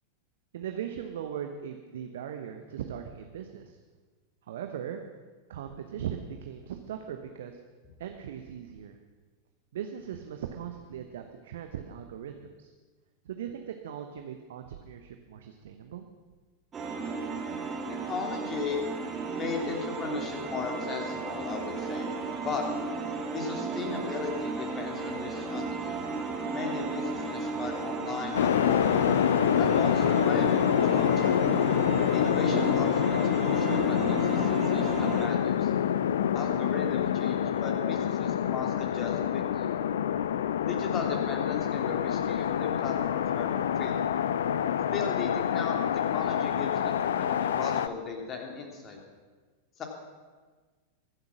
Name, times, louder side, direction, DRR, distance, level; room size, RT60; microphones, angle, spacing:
voice 1, 0.5-3.8 4.5-5.0 5.5-7.6 8.0-9.0 9.7-12.3 12.6-12.7 13.2-16.0, right 9 dB, 60° right, 6 dB, 1.0 m, -39 dB
sound 1, 16.7-35.3, right 4 dB, 20° right, 2.4 m, -34 dB
voice 2, 17.9-18.8 19.3-22.2 22.4-22.7 23.3-26.0 26.5-29.1 29.5-31.4 32.1-35.7 36.3-39.7 40.6-43.5 43.8-44.1 44.9-49.0 49.8-49.9, left 5 dB, 30° left, 2 dB, 3.1 m, -36 dB
sound 2, 28.3-47.9, left 9 dB, 60° left, 0.5 m, -26 dB
23.5 x 8.0 x 6.1 m, 1.4 s
figure-of-eight pair, 90°, 0 cm